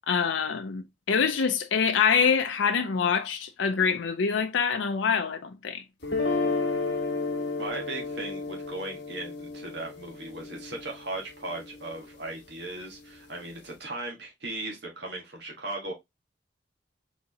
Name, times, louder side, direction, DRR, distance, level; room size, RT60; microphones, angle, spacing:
voice 1, 0.1-5.8, left 6 dB, 80° left, 0.5 m, -25 dB
sound 1, 6.0-12.1, left 3 dB, 65° left, 1.5 m, -32 dB
voice 2, 7.6-15.9, right 2 dB, 65° right, 1.5 m, -37 dB
4.3 x 3.6 x 2.8 m
head